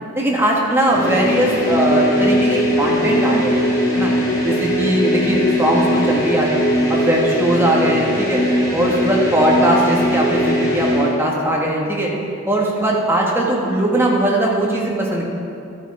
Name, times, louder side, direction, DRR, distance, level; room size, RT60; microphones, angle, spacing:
voice 1, 0.1-3.6 3.9-4.1 4.4-6.6 6.9-8.4 8.7-12.1 12.5-15.2, right 1 dB, 10° right, -3 dB, 1.6 m, -19 dB
sound 1, 0.8-11.2, equal, 50° left, 3.0 m, -19 dB
12.0 x 8.4 x 4.9 m, 2.7 s
head